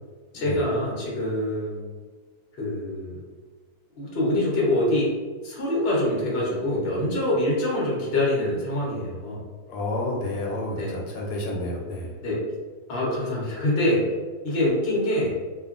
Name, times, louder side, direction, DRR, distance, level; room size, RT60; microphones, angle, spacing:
voice 1, 0.3-1.8 2.6-3.2 4.0-5.1 5.4-9.4 10.8-11.0 12.2-12.4 12.9-14.1 14.4-15.3, left 1 dB, 45° left, -5 dB, 0.9 m, -25 dB
voice 2, 9.7-12.1, left 1 dB, 85° left, -2 dB, 1.3 m, -30 dB
2.9 x 2.4 x 2.4 m, 1.4 s
omnidirectional pair, 1.9 m